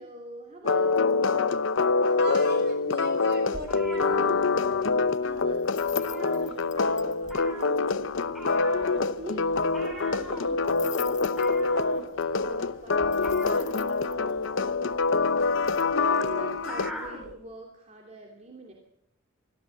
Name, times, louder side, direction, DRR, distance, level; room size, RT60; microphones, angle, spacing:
voice 1, 0.0-1.4 5.2-8.1 9.2-11.5 12.1-14.8 15.5-18.7, right 1 dB, 35° right, 1 dB, 2.9 m, -45 dB
sound 1, 0.6-16.9, left 4 dB, 65° left, 0.7 m, -25 dB
voice 2, 2.1-4.2, right 2 dB, 55° right, 5 dB, 6.4 m, -40 dB
sound 2, 3.5-5.0 5.3-5.5 5.8-6.9 7.2-17.3, equal, ahead, 7.6 m, -42 dB
sound 3, 5.6-7.3 7.6-7.7 7.9-8.0 8.2-8.3 8.5-8.6 10.7-11.9 13.1-14.1 15.5-15.8, left 13 dB, 35° left, 1.0 m, -43 dB
24.5 x 15.0 x 7.8 m, 0.77 s
head